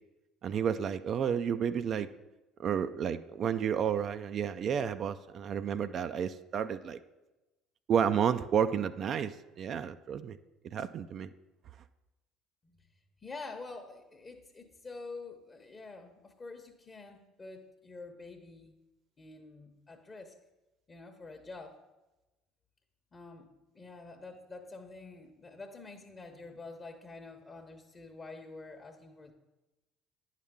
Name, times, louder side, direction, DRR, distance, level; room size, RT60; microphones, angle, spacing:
voice 1, 0.4-2.1 2.6-7.0 7.9-10.4 10.7-11.3, right 8 dB, 50° right, 11 dB, 0.3 m, -31 dB
voice 2, 13.2-18.7 19.2-20.3 20.9-21.8 23.1-29.3, left 3 dB, 30° left, 4 dB, 0.9 m, -47 dB
10.0 x 5.7 x 3.6 m, 1.0 s
hypercardioid pair, 60°, 0 cm